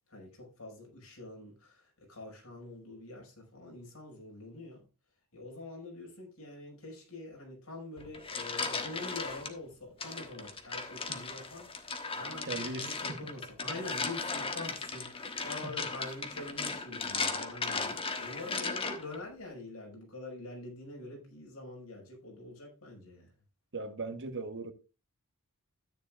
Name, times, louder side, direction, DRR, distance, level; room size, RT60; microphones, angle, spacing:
voice 1, 0.1-4.9 5.3-23.3, left 2 dB, 70° left, 5.5 m, -45 dB
sound 1, 8.0-9.5 10.0-19.2, left 4 dB, 25° left, 1.3 m, -37 dB
voice 2, 12.4-13.3 15.6-15.7 23.7-24.7, right 3 dB, 55° right, 1.1 m, -39 dB
13.5 x 9.5 x 2.4 m
head